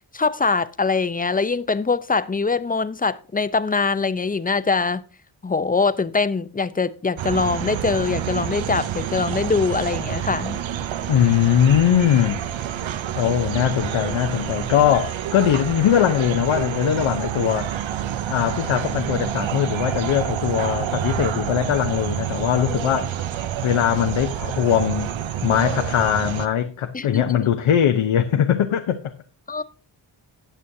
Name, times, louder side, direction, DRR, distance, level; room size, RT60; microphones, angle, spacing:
voice 1, 0.1-5.0 5.4-10.6 26.9-27.4 29.5-29.6, left 4 dB, 20° left, 0.6 m, -23 dB
sound 1, 7.2-26.5, right 10 dB, 75° right, 0.8 m, -28 dB
voice 2, 11.1-12.4 13.1-17.9 18.3-23.1 23.6-25.1 25.4-29.0, left 9 dB, 85° left, 0.8 m, -20 dB
18.5 x 6.3 x 2.7 m
cardioid pair, 55°, 47 cm